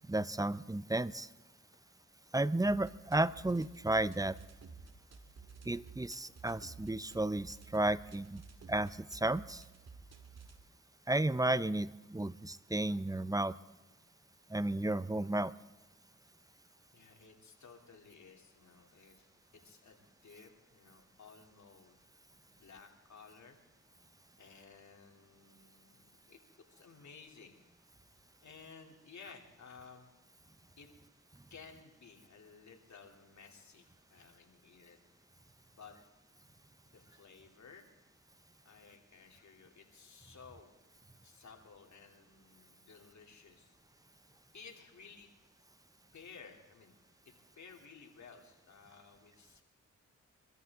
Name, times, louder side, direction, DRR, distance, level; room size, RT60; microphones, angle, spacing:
voice 1, 0.1-1.3 2.3-4.4 5.7-8.4 8.7-9.6 11.1-13.5 14.5-15.5, right 2 dB, 10° right, 17 dB, 0.6 m, -33 dB
sound 1, 2.6-10.6, right 5 dB, 55° right, 2.2 m, -54 dB
voice 2, 16.9-22.0 22.5-23.6 24.4-26.4 26.7-27.6 28.4-30.1 30.8-30.9 31.5-35.0 35.7-36.0 36.8-37.9 38.6-40.7 41.2-43.7 44.5-45.3 46.1-46.9 47.2-49.6, left 5 dB, 60° left, 2 dB, 2.9 m, -56 dB
24.0 x 13.5 x 3.6 m, 1.2 s
cardioid pair, 50°, 32 cm